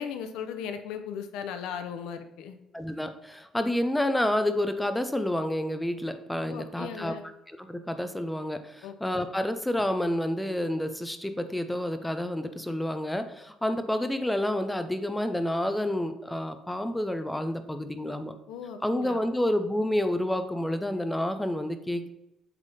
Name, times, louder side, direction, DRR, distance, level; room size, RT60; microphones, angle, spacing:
voice 1, 0.0-2.6 6.5-7.2 8.8-8.9 18.5-19.2, left 7 dB, 90° left, 8 dB, 0.7 m, -37 dB
voice 2, 2.7-7.1 7.5-18.3 18.8-22.1, left 1 dB, 5° left, 9 dB, 0.5 m, -29 dB
8.2 x 3.5 x 4.1 m, 0.89 s
cardioid pair, 155°, 0 cm